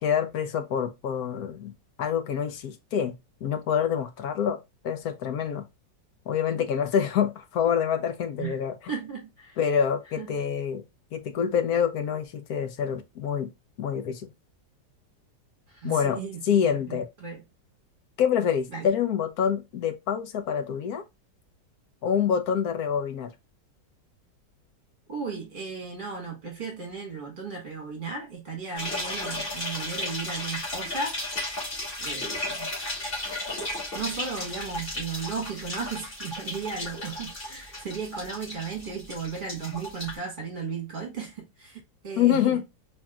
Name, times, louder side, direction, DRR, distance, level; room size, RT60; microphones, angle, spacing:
voice 1, 0.0-1.7 2.0-3.1 3.4-4.6 4.8-5.7 6.3-8.7 9.6-10.8 11.1-13.5 13.8-14.3 15.8-16.2 16.5-17.1 18.2-21.0 22.0-23.3 42.2-42.6, left 8 dB, 65° left, 1.1 m, -26 dB
voice 2, 8.9-9.6 10.2-10.3 15.7-17.4 18.7-18.9 25.1-31.2 32.0-32.7 33.6-42.6, right 5 dB, 30° right, 1.5 m, -35 dB
sound 1, 28.8-40.2, left 1 dB, 30° left, 2.2 m, -34 dB
4.4 x 3.5 x 2.3 m
omnidirectional pair, 2.0 m